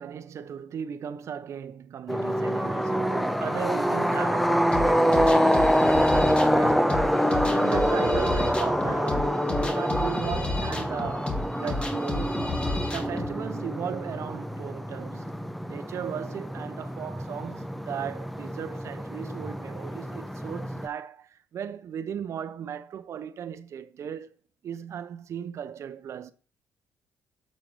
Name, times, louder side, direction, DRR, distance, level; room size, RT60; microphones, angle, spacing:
voice 1, 0.0-6.1 6.6-7.2 7.5-9.3 9.6-12.4 12.9-15.4 15.7-24.3 24.6-26.3, right 8 dB, 60° right, 0.9 m, -36 dB
sound 1, 2.1-20.9, equal, ahead, 0.7 m, -26 dB
sound 2, 4.7-13.3, left 3 dB, 20° left, 1.9 m, -33 dB
7.6 x 4.7 x 6.6 m
cardioid pair, 85°, 6 cm